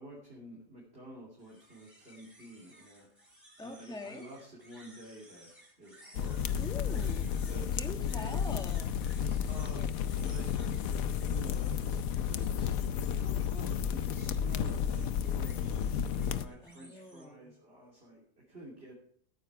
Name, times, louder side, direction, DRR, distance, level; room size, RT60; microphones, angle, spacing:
voice 1, 0.0-3.1 3.6-6.6 7.4-7.9 8.1-8.2 9.4-10.0 10.3-11.8 12.3-18.9, right 1 dB, 40° right, -5 dB, 3.2 m, -50 dB
sound 1, 1.4-17.3, right 1 dB, 20° right, 2.8 m, -58 dB
voice 2, 3.6-4.3 6.6-7.3 7.8-8.9 16.6-17.5, left 2 dB, 5° left, 4 dB, 1.2 m, -44 dB
sound 2, 6.1-16.5, left 8 dB, 70° left, 1.0 m, -32 dB
14.0 x 10.5 x 4.7 m, 0.64 s
omnidirectional pair, 1.7 m